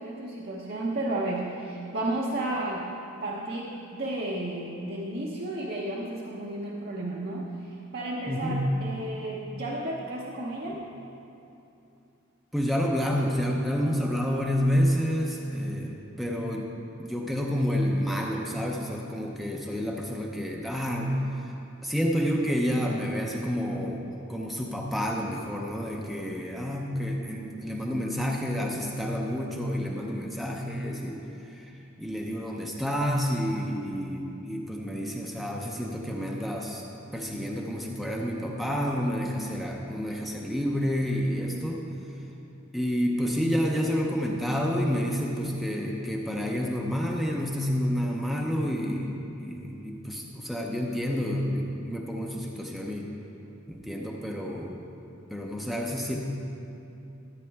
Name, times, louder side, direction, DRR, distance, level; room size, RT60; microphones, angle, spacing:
voice 1, 0.0-2.9 3.2-10.8, right 1 dB, 50° right, -3 dB, 0.9 m, -33 dB
voice 2, 8.3-8.6 12.5-16.7 17.0-21.5 21.8-36.8 37.1-41.8 42.7-53.1 53.7-54.8 55.3-56.2, equal, ahead, -2 dB, 0.7 m, -29 dB
13.5 x 8.3 x 3.5 m, 2.8 s
head